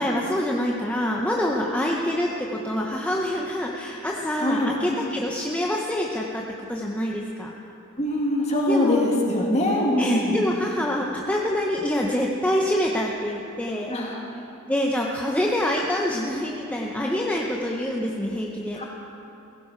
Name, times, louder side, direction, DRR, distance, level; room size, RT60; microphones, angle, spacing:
voice 1, 0.0-7.5 8.6-9.0 10.0-13.9 14.7-18.8, left 1 dB, 5° left, -1 dB, 0.8 m, -26 dB
voice 2, 4.4-4.7 8.0-10.4 13.9-14.2 18.8-18.9, left 1 dB, 30° left, -2 dB, 2.6 m, -23 dB
17.0 x 15.5 x 4.5 m, 3.0 s
head